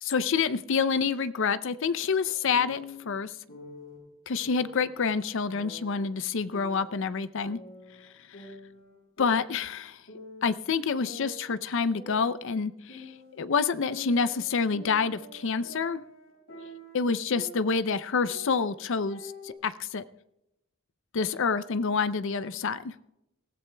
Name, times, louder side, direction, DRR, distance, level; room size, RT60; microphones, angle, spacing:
voice 1, 0.0-2.8 3.1-3.3 4.3-7.6 8.4-8.5 9.2-10.0 10.4-13.1 13.4-16.0 16.9-20.0 21.1-22.9, left 5 dB, 60° left, 14 dB, 0.5 m, -27 dB
sound 1, 2.0-3.0 3.5-4.0 4.4-6.1 6.5-8.1 8.3-9.8 10.1-10.6 11.0-13.4 13.8-17.9 18.2-19.5, left 1 dB, 75° left, 6.2 m, -46 dB
21.5 x 15.0 x 2.2 m, 0.88 s
head